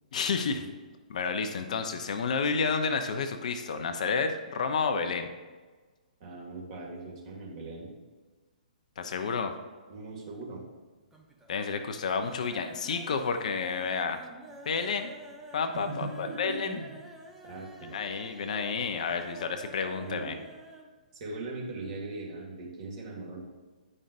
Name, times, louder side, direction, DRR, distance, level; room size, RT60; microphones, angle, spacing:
voice 1, 0.1-0.7 1.1-5.3 9.0-9.5 11.5-14.2 14.6-15.1 15.5-16.8 17.9-20.4, left 5 dB, 55° left, 7 dB, 0.6 m, -30 dB
voice 2, 6.2-7.9 9.9-10.6 15.8-16.9 17.4-17.9 20.0-20.4 21.1-23.4, right 3 dB, 40° right, -3 dB, 2.1 m, -39 dB
sound 1, 10.1-10.8 11.1-11.6 11.9-20.9 21.2-21.3 21.6-21.7, right 1 dB, 5° right, 0.7 m, -50 dB
9.8 x 5.4 x 2.6 m, 1.3 s
figure-of-eight pair, 130°, 5 cm